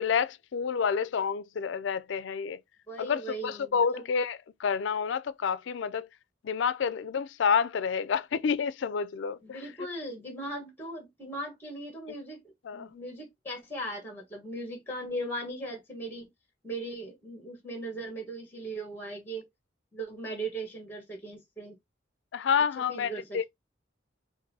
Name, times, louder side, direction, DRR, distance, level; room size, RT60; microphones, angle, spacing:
voice 1, 0.0-2.6 3.0-6.1 6.4-9.6 12.7-12.9 22.3-23.4, left 6 dB, 70° left, 0.4 m, -29 dB
voice 2, 2.9-4.0 9.4-16.3 16.6-19.4 19.9-21.7 22.7-23.5, right 1 dB, 10° left, 1.3 m, -38 dB
5.3 x 2.5 x 2.7 m
head